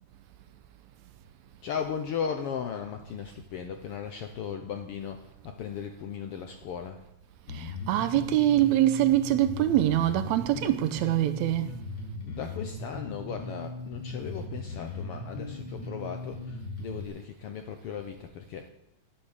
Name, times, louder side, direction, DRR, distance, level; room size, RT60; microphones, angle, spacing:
voice 1, 1.6-7.0 12.2-18.7, left 7 dB, 75° left, 1.4 m, -37 dB
Bass guitar, 7.5-17.1, left 2 dB, 50° left, 3.3 m, -38 dB
voice 2, 7.5-11.7, right 13 dB, 75° right, 1.9 m, -24 dB
10.5 x 8.6 x 6.5 m
omnidirectional pair, 3.4 m